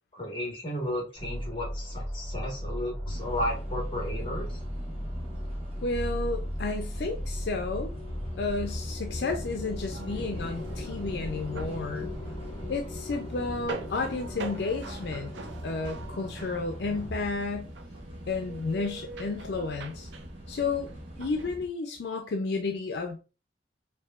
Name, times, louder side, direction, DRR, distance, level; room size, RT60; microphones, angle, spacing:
voice 1, 0.1-4.6, left 1 dB, 30° left, 1.3 m, -34 dB
sound 1, 1.1-17.2, equal, 10° left, 1.1 m, -37 dB
sound 2, 3.1-21.7, equal, 30° right, 0.9 m, -43 dB
voice 2, 5.8-7.9 8.4-12.1 12.7-15.3 15.6-17.7 18.3-20.1 20.5-20.9 21.2-23.2, left 3 dB, 70° left, 0.4 m, -32 dB
sound 3, 9.9-21.5, right 3 dB, 85° right, 0.5 m, -45 dB
4.6 x 2.7 x 2.4 m
head